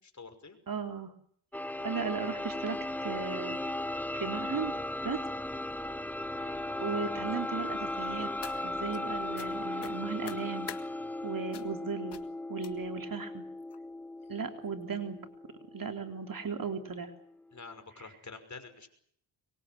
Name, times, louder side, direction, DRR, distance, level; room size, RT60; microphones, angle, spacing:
voice 1, 0.0-0.6 6.4-6.6 17.5-18.9, left 4 dB, 35° left, 8 dB, 5.8 m, -48 dB
voice 2, 0.7-1.1 1.8-3.6 4.1-4.7 5.0-5.2 6.4-8.3 8.6-10.7 11.2-12.2 12.5-13.4 14.3-15.2 15.7-17.1 18.0-18.1, right 5 dB, 45° right, 6 dB, 3.6 m, -36 dB
sound 1, 1.5-17.1, left 1 dB, 5° left, 1.1 m, -37 dB
sound 2, 8.0-9.0 9.4-9.5 9.8-10.8 11.5-11.8 12.1-12.3 12.6-13.0 13.7-13.8 14.2-14.4 14.7-14.8, left 8 dB, 55° left, 2.3 m, -46 dB
24.0 x 22.5 x 7.8 m, 0.64 s
cardioid pair, 75°, 47 cm